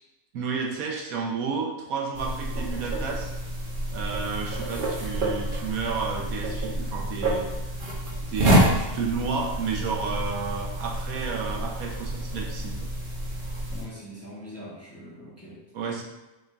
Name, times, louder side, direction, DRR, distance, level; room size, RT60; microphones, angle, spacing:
voice 1, 0.3-3.3 3.9-7.4 8.3-12.9 15.7-16.0, right 5 dB, 90° right, 0 dB, 1.3 m, -31 dB
sound 1, 2.1-13.8, right 1 dB, 45° right, 1.0 m, -28 dB
voice 2, 13.7-15.6, equal, 15° left, -6 dB, 0.8 m, -42 dB
5.9 x 2.6 x 3.4 m, 1.0 s
omnidirectional pair, 1.5 m